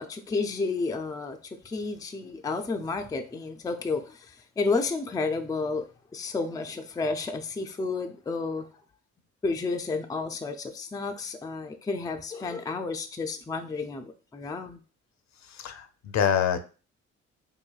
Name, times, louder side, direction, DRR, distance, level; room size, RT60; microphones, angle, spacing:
voice 1, 0.0-5.9 6.1-8.7 9.4-14.8, left 4 dB, 10° left, 0.4 m, -31 dB
voice 2, 15.4-16.6, left 8 dB, 65° left, 0.6 m, -26 dB
4.7 x 2.6 x 2.3 m
cardioid pair, 90°, 30 cm